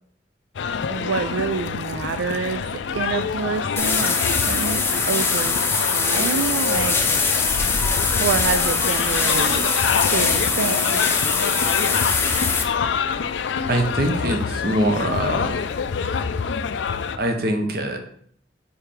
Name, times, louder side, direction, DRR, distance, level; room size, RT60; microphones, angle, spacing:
sound 1, 0.5-17.2, left 6 dB, 75° left, 0.4 m, -26 dB
voice 1, 0.9-7.0 8.2-9.7 10.1-11.0, right 6 dB, 80° right, 9 dB, 0.3 m, -27 dB
sound 2, 3.8-12.6, left 4 dB, 15° left, 0.5 m, -22 dB
voice 2, 13.7-15.6 17.2-18.0, right 1 dB, 55° right, 5 dB, 0.9 m, -23 dB
4.8 x 4.4 x 5.0 m, 0.64 s
head